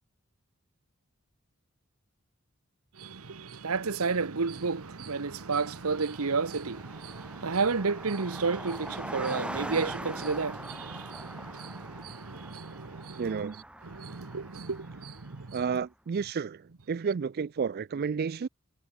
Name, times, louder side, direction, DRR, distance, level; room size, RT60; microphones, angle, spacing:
voice 1, 3.0-13.4 13.8-15.6, right 4 dB, 90° right, 1.0 m, -32 dB
Car passing by, 4.3-4.4 4.6-15.6, right 1 dB, 5° right, 1.4 m, -43 dB
voice 2, 13.2-13.6 15.5-18.5, right 6 dB, 45° right, 0.4 m, -31 dB
head